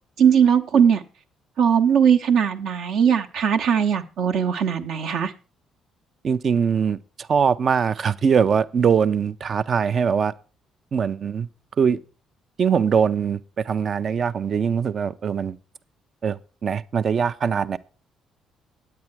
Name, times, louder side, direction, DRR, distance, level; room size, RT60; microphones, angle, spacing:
voice 1, 0.2-1.0 1.6-5.3, right 7 dB, 65° right, 0.9 m, -19 dB
voice 2, 6.2-10.3 10.9-11.5 11.8-12.0 12.6-15.6 16.2-17.8, right 6 dB, 50° right, 0.6 m, -22 dB
9.4 x 8.9 x 4.6 m
hypercardioid pair, 50°, 0 cm